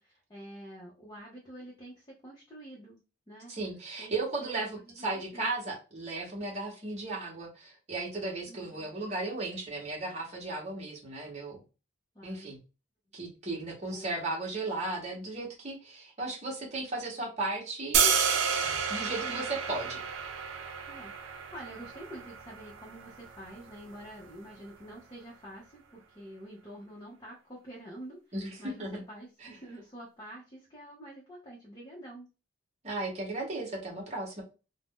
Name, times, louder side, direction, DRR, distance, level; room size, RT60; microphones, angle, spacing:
voice 1, 0.0-3.5 4.0-4.1 4.4-5.5 8.5-8.9 12.1-12.6 13.8-14.1 19.2-19.5 20.9-32.3, right 1 dB, 20° left, -4 dB, 0.6 m, -47 dB
voice 2, 3.5-11.6 12.2-12.6 13.1-18.1 18.9-20.0 28.3-29.0 29.4-29.5 32.8-34.4, right 2 dB, 35° right, -2 dB, 1.0 m, -35 dB
sound 1, 17.9-24.0, right 6 dB, 80° right, 0.5 m, -31 dB
2.5 x 2.0 x 3.6 m, 0.31 s
head